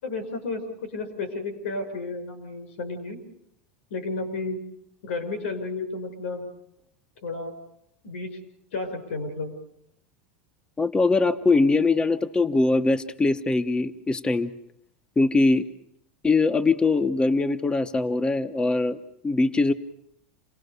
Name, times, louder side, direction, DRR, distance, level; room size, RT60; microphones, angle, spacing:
voice 1, 0.0-3.2 3.9-4.6 5.0-6.5 7.2-7.5 8.0-8.4 8.7-9.5, left 3 dB, 85° left, 9 dB, 5.7 m, -32 dB
voice 2, 10.8-14.5 15.2-15.7 16.2-19.0 19.2-19.7, left 3 dB, 15° left, 9 dB, 1.0 m, -22 dB
28.5 x 18.5 x 6.8 m, 0.76 s
supercardioid pair, 110°, 6 cm